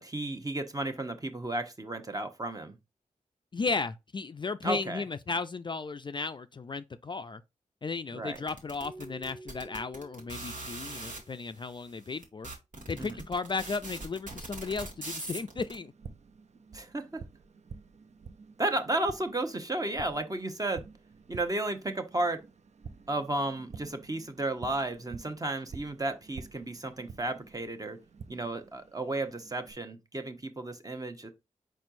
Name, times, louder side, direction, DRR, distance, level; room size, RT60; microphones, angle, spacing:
voice 1, 0.0-2.8 4.6-5.0 8.1-8.4 13.0-13.2 16.7-17.2 18.6-20.8 21.3-22.4 23.1-28.0 28.3-31.3, right 2 dB, 25° right, 0.9 m, -33 dB
voice 2, 3.5-7.4 7.8-12.5 12.9-15.9, left 4 dB, 35° left, 0.3 m, -35 dB
sound 1, 8.4-11.2 11.9-12.0 12.2-15.7, right 2 dB, 75° right, 1.7 m, -41 dB
Keyboard (musical), 8.8-11.6, right 2 dB, 10° left, 1.0 m, -50 dB
Tap, 14.8-29.7, right 6 dB, 55° right, 0.5 m, -50 dB
4.7 x 4.3 x 2.6 m
cardioid pair, 55°, 13 cm